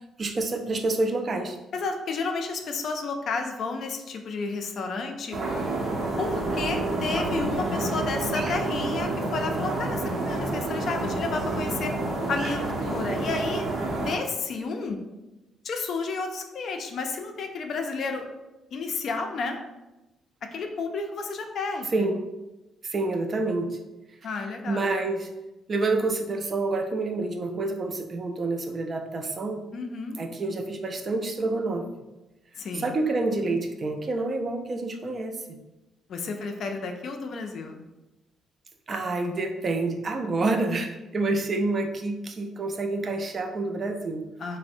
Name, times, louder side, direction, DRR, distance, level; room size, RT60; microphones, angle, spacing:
voice 1, 0.2-1.6 21.9-22.2 22.8-23.8 24.7-25.3 25.7-29.6 30.2-31.9 32.7-35.6 38.9-44.2, right 2 dB, 40° right, 5 dB, 0.4 m, -28 dB
voice 2, 1.7-5.4 6.2-11.9 12.3-13.7 14.0-15.0 15.6-18.3 18.7-19.6 20.5-22.1 24.2-24.9 29.7-30.2 32.6-32.9 36.1-37.8 44.4-44.6, left 4 dB, 60° left, 4 dB, 0.3 m, -31 dB
sound 1, 5.3-14.2, right 2 dB, 65° right, 0.8 m, -29 dB
3.4 x 2.0 x 2.5 m, 1.0 s
cardioid pair, 90°, 0 cm